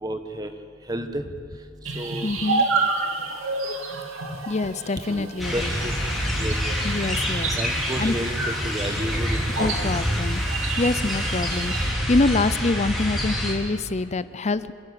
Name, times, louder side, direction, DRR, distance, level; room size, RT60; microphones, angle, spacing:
voice 1, 0.0-0.5 0.9-1.2 1.8-2.3 5.1-5.9 6.4-6.6 7.5-9.7 10.1-10.2, right 1 dB, 20° right, 7 dB, 1.2 m, -32 dB
sound 1, 1.8-11.8, right 3 dB, 75° right, 2.2 m, -30 dB
voice 2, 2.2-2.6 4.5-5.7 6.4-6.5 6.8-7.6 8.0-8.2 9.6-10.4 10.8-14.7, left 3 dB, 35° left, 14 dB, 0.6 m, -25 dB
sound 2, 5.4-13.5, equal, ahead, 4.4 m, -26 dB
26.5 x 11.0 x 9.8 m, 2.2 s
head